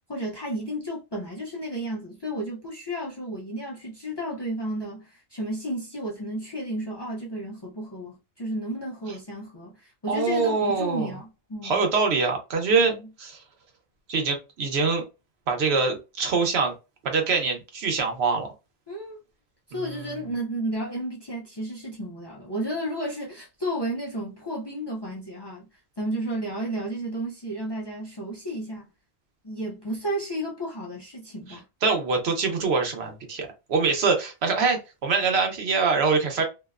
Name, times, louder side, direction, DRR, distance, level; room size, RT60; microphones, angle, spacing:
voice 1, 0.1-11.8 12.9-13.1 18.9-19.2 19.7-25.7 26.0-28.9 29.4-31.6, right 1 dB, 40° left, 0.4 m, -32 dB
voice 2, 10.1-11.1 11.6-12.9 13.2-13.3 14.1-15.0 15.5-16.7 17.0-18.5 19.7-20.2 31.8-36.4, right 4 dB, 90° right, 1.0 m, -24 dB
2.6 x 2.1 x 2.3 m
omnidirectional pair, 1.0 m